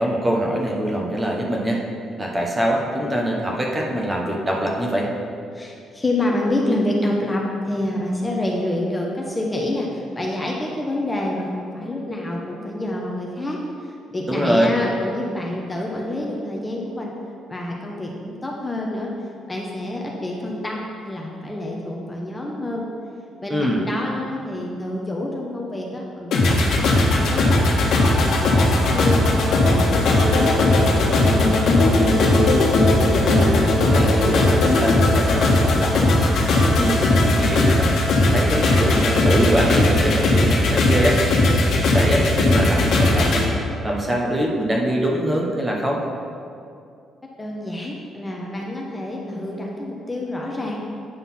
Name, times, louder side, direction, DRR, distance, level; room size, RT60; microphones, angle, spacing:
voice 1, 0.0-1.8 2.2-5.1 14.3-14.7 23.5-23.9 33.2-41.2 41.5-43.5 43.8-46.0, right 1 dB, 15° right, -1 dB, 1.1 m, -23 dB
voice 2, 5.5-17.1 17.5-19.1 19.5-22.9 23.4-27.6 27.9-29.9 30.3-32.4 47.4-50.8, left 1 dB, 15° left, -1 dB, 0.8 m, -28 dB
sound 1, 26.3-43.4, left 2 dB, 65° left, 1.3 m, -18 dB
9.2 x 4.0 x 5.6 m, 2.4 s
cardioid pair, 120°, 0 cm